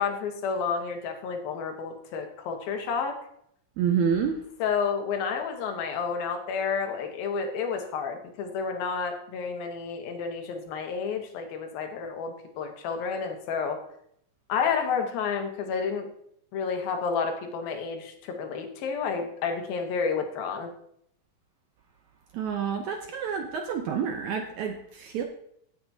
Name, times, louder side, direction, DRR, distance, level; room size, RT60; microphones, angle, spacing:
voice 1, 0.0-3.2 4.6-13.8 14.5-16.1 16.5-20.7, left 6 dB, 85° left, 4 dB, 3.0 m, -30 dB
voice 2, 3.8-4.4 22.3-25.2, right 7 dB, 75° right, 4 dB, 1.7 m, -28 dB
17.0 x 7.8 x 2.7 m, 0.71 s
omnidirectional pair, 4.1 m